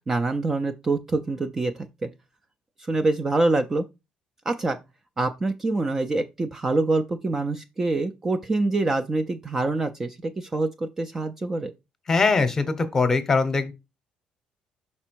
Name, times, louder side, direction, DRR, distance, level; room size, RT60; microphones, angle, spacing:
voice 1, 0.1-2.1 2.8-3.8 4.5-4.8 5.2-11.7, right 2 dB, 15° right, 0.4 m, -25 dB
voice 2, 12.1-13.7, left 4 dB, 20° left, 0.8 m, -21 dB
5.9 x 4.2 x 4.5 m
cardioid pair, 170°, 2 cm